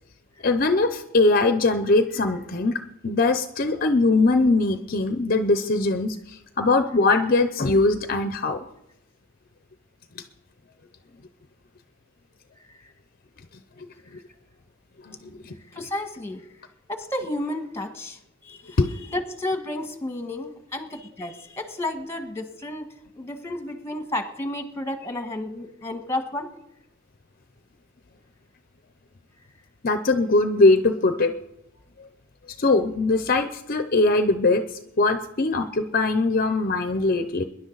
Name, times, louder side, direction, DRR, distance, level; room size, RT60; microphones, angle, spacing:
voice 1, 0.4-2.7 3.0-8.6 10.2-10.3 15.0-15.5 18.8-18.9 29.8-31.3 32.6-34.6 35.0-37.4, left 3 dB, 45° left, 9 dB, 0.7 m, -21 dB
voice 2, 15.7-16.5 16.9-22.9 23.1-26.5, left 1 dB, 15° left, 6 dB, 1.5 m, -32 dB
23.0 x 11.0 x 4.0 m, 0.84 s
head